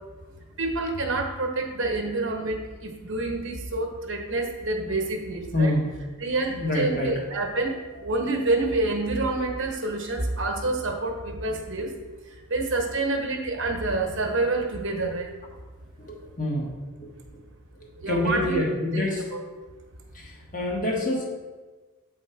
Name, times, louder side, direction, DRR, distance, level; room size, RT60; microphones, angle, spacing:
voice 1, 0.6-5.8 6.2-11.9 12.3-15.3 18.0-18.6 18.9-19.0 19.3-19.4, right 2 dB, 55° right, 2 dB, 1.1 m, -27 dB
voice 2, 5.5-5.9 6.6-7.2 16.1-16.7 17.0-17.1 18.0-19.2 20.1-21.2, left 1 dB, 35° left, -1 dB, 1.4 m, -26 dB
8.0 x 4.3 x 4.4 m, 1.3 s
head